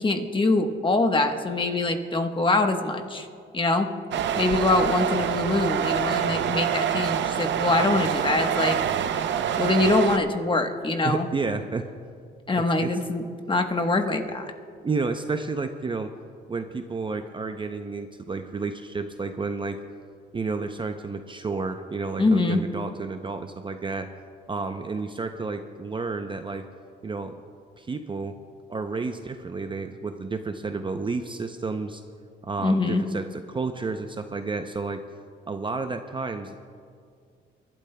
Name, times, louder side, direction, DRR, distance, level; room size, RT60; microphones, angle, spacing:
voice 1, 0.0-3.3 3.5-3.9 4.3-8.8 9.6-11.3 12.5-14.5 22.2-22.6 32.6-33.0, left 2 dB, 25° left, 5 dB, 1.1 m, -24 dB
sound 1, 4.1-10.2, right 9 dB, 65° right, 0.6 m, -26 dB
voice 2, 11.0-11.9 12.6-12.9 14.8-16.1 16.5-19.8 20.3-24.1 24.5-26.6 27.0-27.3 27.8-28.3 28.7-32.0 32.4-35.0 35.5-36.6, right 4 dB, 25° right, 7 dB, 0.6 m, -31 dB
28.0 x 12.0 x 2.2 m, 2.2 s
cardioid pair, 90°, 20 cm